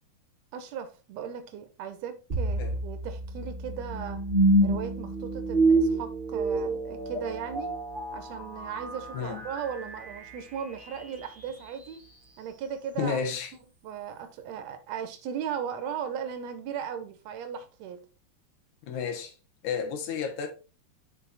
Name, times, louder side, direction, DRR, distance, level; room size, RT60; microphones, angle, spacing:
voice 1, 0.5-4.2 4.6-7.8 8.1-12.0 12.4-13.2 13.8-18.0, right 8 dB, 70° right, 2.0 m, -37 dB
sound 1, 2.3-11.4, right 2 dB, 25° right, 1.2 m, -28 dB
voice 2, 9.1-9.4 13.0-13.5 18.9-19.3 19.6-20.5, left 6 dB, 80° left, 2.7 m, -31 dB
7.8 x 4.4 x 4.1 m
omnidirectional pair, 3.5 m